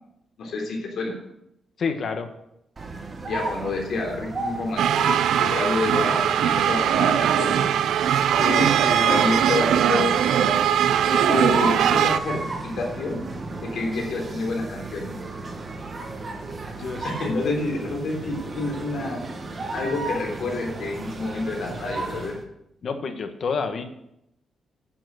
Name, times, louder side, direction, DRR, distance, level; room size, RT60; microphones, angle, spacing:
voice 1, 0.4-1.1 3.3-4.8 5.4-7.6 8.4-8.7 9.0-10.1 10.4-10.6 11.1-13.2 13.6-15.2 17.0-19.2 19.7-22.3, left 3 dB, 70° left, 0 dB, 3.7 m, -28 dB
voice 2, 1.8-2.3 8.3-9.3 16.8-17.3 22.8-23.8, left 4 dB, 50° left, 7 dB, 1.3 m, -29 dB
sound 1, 2.8-22.4, right 2 dB, 30° right, 1.5 m, -34 dB
sound 2, 4.8-12.2, right 10 dB, 90° right, 0.5 m, -21 dB
10.5 x 7.4 x 6.4 m, 0.81 s
cardioid pair, 130°, 0 cm